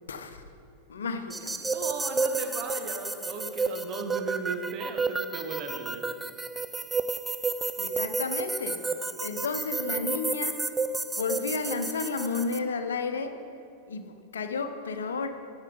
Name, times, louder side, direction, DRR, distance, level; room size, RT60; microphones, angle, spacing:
voice 1, 0.1-0.4 0.9-1.6 7.8-8.8 9.2-10.6 11.2-13.4 13.9-15.3, left 4 dB, 65° left, 8 dB, 0.8 m, -32 dB
sound 1, 1.3-12.6, right 3 dB, 10° right, 0.4 m, -31 dB
voice 2, 1.6-6.1, right 4 dB, 40° right, 5 dB, 1.0 m, -37 dB
9.9 x 8.0 x 5.2 m, 2.7 s
figure-of-eight pair, 90°, 0 cm